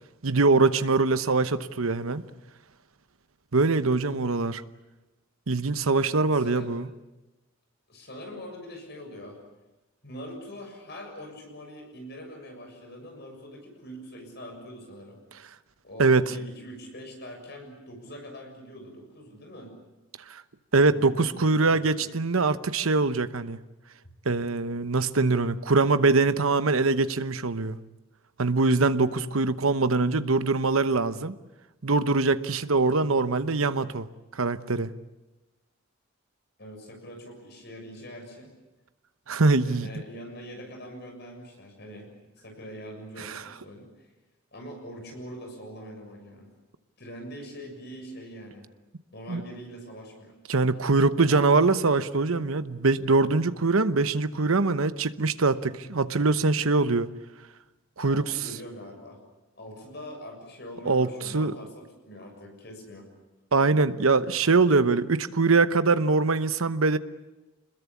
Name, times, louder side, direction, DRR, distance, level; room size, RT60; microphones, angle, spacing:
voice 1, 0.2-2.2 3.5-4.6 5.5-6.9 16.0-16.3 20.3-20.4 20.7-23.6 24.2-27.8 28.4-31.4 31.8-34.1 34.3-34.9 39.3-39.9 43.2-43.4 49.3-49.4 50.5-57.1 58.0-58.3 60.8-61.5 63.5-67.0, right 3 dB, 80° right, 12 dB, 1.0 m, -23 dB
voice 2, 6.3-6.7 7.9-9.4 10.0-15.2 15.8-19.7 20.9-22.1 36.6-38.5 39.6-42.1 42.4-44.1 44.5-46.5 47.0-48.7 49.1-50.3 51.2-51.5 58.0-59.2 59.6-63.1, equal, 50° left, 3 dB, 7.0 m, -43 dB
26.5 x 21.0 x 8.5 m, 1.0 s
head